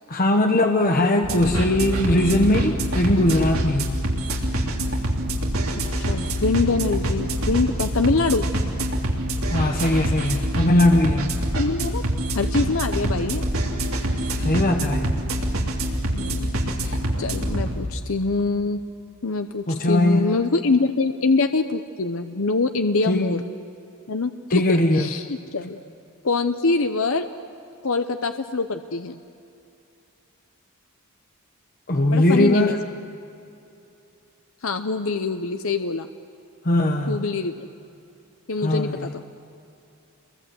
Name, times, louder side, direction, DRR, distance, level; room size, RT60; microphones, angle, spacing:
voice 1, 0.1-3.9 9.5-11.4 14.4-15.2 19.7-20.4 23.1-23.4 24.5-25.1 31.9-32.9 36.6-37.2 38.6-39.1, left 1 dB, 40° left, 4 dB, 1.2 m, -20 dB
sound 1, 1.2-17.7, right 1 dB, 75° right, 3.4 m, -25 dB
voice 2, 5.9-8.4 11.5-12.0 12.3-13.4 16.1-16.5 16.8-18.8 19.2-23.4 24.1-25.8 26.2-27.3 27.8-29.2 32.1-32.8 34.6-36.1 37.1-37.7 38.5-39.2, left 3 dB, 65° left, 8 dB, 0.8 m, -24 dB
28.5 x 22.5 x 7.8 m, 2.7 s
head